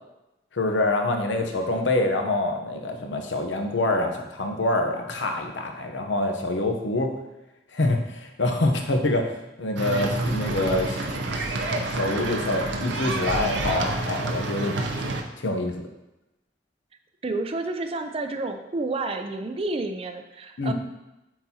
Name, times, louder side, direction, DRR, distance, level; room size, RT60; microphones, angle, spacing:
voice 1, 0.5-7.2 7.7-9.3 9.6-11.5 11.9-15.9 20.6-20.7, left 2 dB, 85° left, 4 dB, 0.8 m, -26 dB
sound 1, 9.8-15.2, right 2 dB, 80° right, 0.6 m, -28 dB
voice 2, 17.2-20.7, right 2 dB, 30° right, 7 dB, 0.4 m, -30 dB
8.4 x 3.9 x 2.8 m, 0.95 s
head